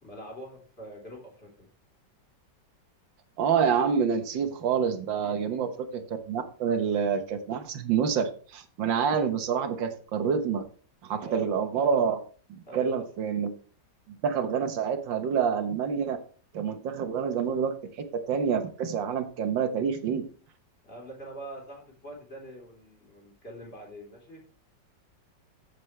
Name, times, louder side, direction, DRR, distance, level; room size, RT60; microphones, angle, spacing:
voice 1, 0.0-1.7 5.2-5.6 11.2-11.5 12.7-12.9 20.8-24.4, right 1 dB, 30° left, -2 dB, 4.2 m, -44 dB
voice 2, 3.4-10.7 11.0-12.2 12.5-13.5 14.1-16.2 16.5-20.3, right 7 dB, 90° right, 8 dB, 1.9 m, -27 dB
15.0 x 7.0 x 3.3 m, 0.40 s
omnidirectional pair, 2.0 m